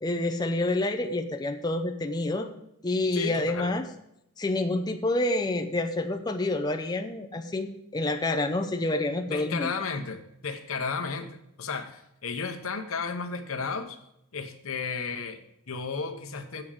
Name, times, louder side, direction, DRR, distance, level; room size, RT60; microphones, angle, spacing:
voice 1, 0.0-2.5 2.8-3.8 4.4-9.7, left 2 dB, 20° left, 5 dB, 0.5 m, -28 dB
voice 2, 3.1-3.7 9.3-14.0 14.3-16.6, left 5 dB, 75° left, 6 dB, 0.9 m, -33 dB
7.8 x 5.0 x 7.3 m, 0.79 s
head